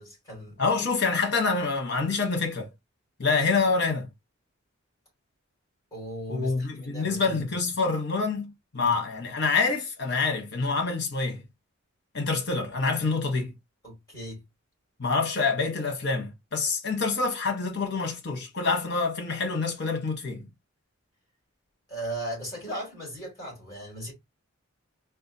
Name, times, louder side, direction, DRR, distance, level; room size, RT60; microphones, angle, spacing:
voice 1, 0.0-0.6 5.9-7.6 8.7-9.0 13.8-14.4 21.9-24.1, right 1 dB, 20° left, 2.5 m, -37 dB
voice 2, 0.6-2.7 3.2-4.1 6.3-11.4 12.1-13.5 15.0-20.5, left 4 dB, 55° left, 1.0 m, -26 dB
4.2 x 2.3 x 2.7 m
head